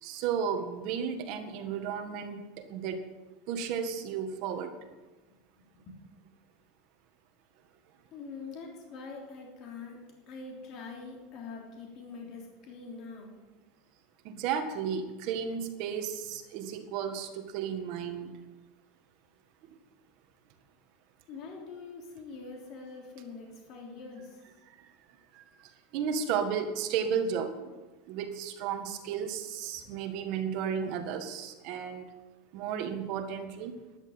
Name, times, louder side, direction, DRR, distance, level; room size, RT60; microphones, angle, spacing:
voice 1, 0.0-3.0 3.5-4.7 14.2-18.3 25.3-25.4 25.9-27.7 28.1-32.0 32.5-33.7, right 7 dB, 50° right, 6 dB, 1.7 m, -33 dB
voice 2, 5.6-6.0 8.1-13.4 21.3-24.4 28.6-28.7 29.1-29.2 29.8-30.0, left 4 dB, 40° left, 0 dB, 3.3 m, -44 dB
12.0 x 11.0 x 7.9 m, 1.2 s
supercardioid pair, 160°, 0 cm